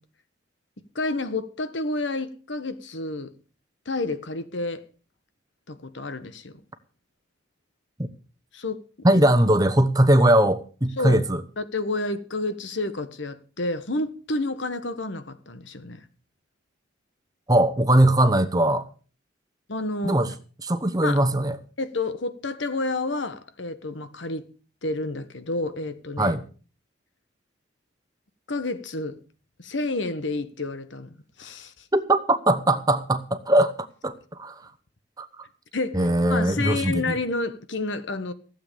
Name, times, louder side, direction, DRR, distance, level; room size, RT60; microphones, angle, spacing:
voice 1, 0.9-3.3 3.8-4.8 5.7-6.6 8.5-8.8 11.0-16.1 19.7-20.2 21.0-21.2 21.8-24.5 24.8-26.3 28.5-29.2 29.6-31.7 35.7-38.3, left 2 dB, 70° left, 1.4 m, -30 dB
voice 2, 9.0-11.4 17.5-18.8 20.0-20.3 20.6-21.6 26.2-26.4 31.9-33.7 34.0-34.1 34.4-34.5 35.2-35.3 35.9-37.2, right 1 dB, 20° right, 1.0 m, -20 dB
15.5 x 8.0 x 6.9 m
head